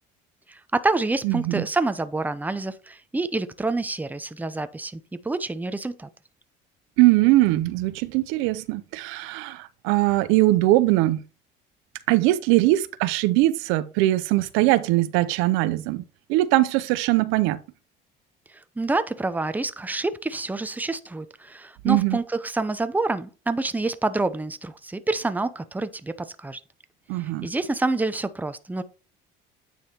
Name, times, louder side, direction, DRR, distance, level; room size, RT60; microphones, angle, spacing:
voice 1, 0.5-6.1 18.5-26.6 27.4-28.8, right 2 dB, 10° right, 0.6 m, -27 dB
voice 2, 1.2-1.6 7.0-11.2 12.1-16.0 16.3-17.6 21.8-22.2 27.1-27.5, right 17 dB, 85° right, 0.6 m, -21 dB
9.1 x 3.4 x 4.3 m
supercardioid pair, 85°, 20 cm